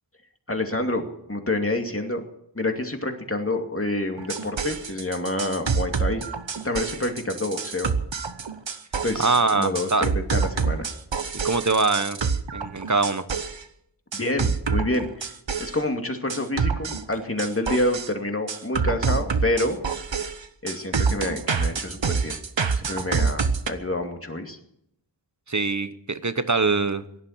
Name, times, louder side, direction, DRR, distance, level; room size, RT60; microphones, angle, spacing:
voice 1, 0.5-2.2 2.5-6.2 6.6-7.9 9.0-9.3 9.5-10.9 14.1-15.3 15.6-19.8 20.6-22.4 22.7-24.6, left 1 dB, 30° left, 4 dB, 2.5 m, -27 dB
sound 1, 4.2-13.6 14.1-15.8 16.3-18.1 18.5-23.7, right 5 dB, 85° right, 1.1 m, -27 dB
voice 2, 9.2-10.1 11.4-12.2 12.5-13.2 25.5-27.0, right 3 dB, 40° right, 12 dB, 1.1 m, -23 dB
17.0 x 11.5 x 7.4 m, 0.75 s
wide cardioid pair, 40°, 43 cm